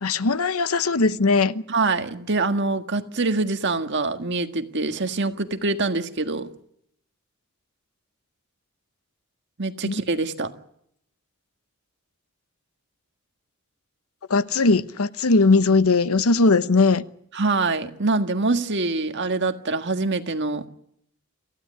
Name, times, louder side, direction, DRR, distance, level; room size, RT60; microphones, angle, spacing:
voice 1, 0.0-1.6 9.9-10.0 14.3-17.0, left 3 dB, 75° left, 0.9 m, -19 dB
voice 2, 1.7-6.5 9.6-10.5 17.3-20.7, right 3 dB, 55° right, 1.7 m, -25 dB
26.5 x 16.0 x 9.7 m
head